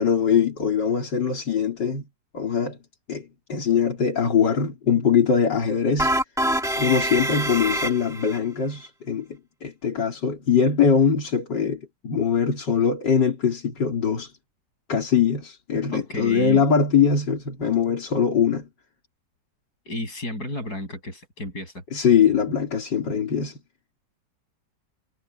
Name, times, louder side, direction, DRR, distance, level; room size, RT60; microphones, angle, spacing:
voice 1, 0.0-2.1 2.3-2.8 3.1-6.1 6.8-14.3 14.9-18.7 21.9-23.6, left 7 dB, 85° left, 3.7 m, -22 dB
sound 1, 6.0-8.4, right 1 dB, ahead, 1.4 m, -25 dB
voice 2, 15.9-16.7 19.8-21.8, left 1 dB, 60° left, 8.6 m, -32 dB
omnidirectional pair, 1.9 m